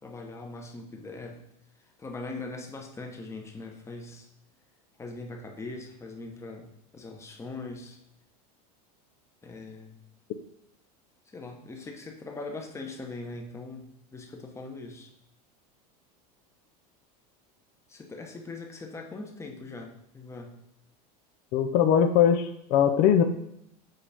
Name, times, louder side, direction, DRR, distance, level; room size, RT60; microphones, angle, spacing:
voice 1, 0.0-1.4 2.0-4.3 5.0-8.0 9.4-10.0 11.3-15.1 17.9-20.6, left 3 dB, 15° left, 2 dB, 1.1 m, -41 dB
voice 2, 21.5-23.2, left 8 dB, 50° left, 6 dB, 0.6 m, -21 dB
7.7 x 5.5 x 3.5 m, 0.76 s
supercardioid pair, 135°, 20 cm